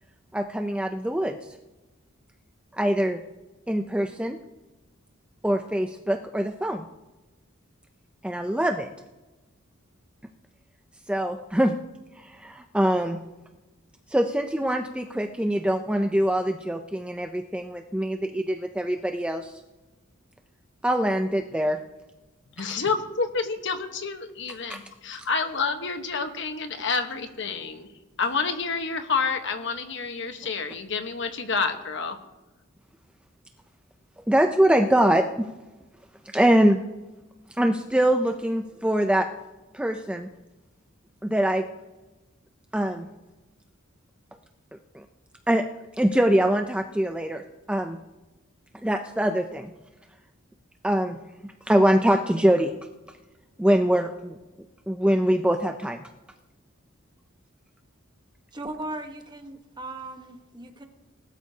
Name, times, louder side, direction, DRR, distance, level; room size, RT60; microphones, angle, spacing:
voice 1, 0.3-1.4 2.7-3.2 3.7-4.4 5.4-6.9 8.2-8.9 11.1-11.8 12.2-13.2 14.1-19.5 20.8-21.8 24.7-24.8 34.3-35.5 36.3-36.8 37.6-39.3 39.7-40.3 41.2-41.6 42.7-43.1 44.9-45.0 45.5-45.7 46.0-47.4 47.7-48.0 48.8-49.7 50.8-51.2 51.4-52.7 53.6-54.4 54.9-56.0, right 1 dB, 5° right, 5 dB, 0.5 m, -23 dB
voice 2, 22.6-27.9 28.2-32.2, left 4 dB, 60° left, 6 dB, 1.2 m, -29 dB
voice 3, 58.5-60.9, right 2 dB, 20° right, 5 dB, 1.2 m, -37 dB
20.0 x 13.0 x 2.8 m, 1.1 s
head